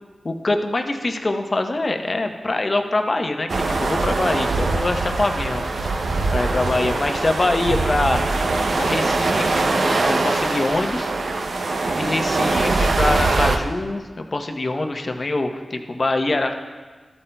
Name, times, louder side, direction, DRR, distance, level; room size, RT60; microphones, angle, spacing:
voice 1, 0.2-5.9 6.3-8.2 8.8-11.1 11.8-16.6, left 2 dB, 45° left, 5 dB, 0.8 m, -24 dB
sound 1, 3.5-13.6, right 3 dB, 80° right, 0.6 m, -22 dB
13.5 x 8.3 x 2.3 m, 1.4 s
cardioid pair, 50°, 0 cm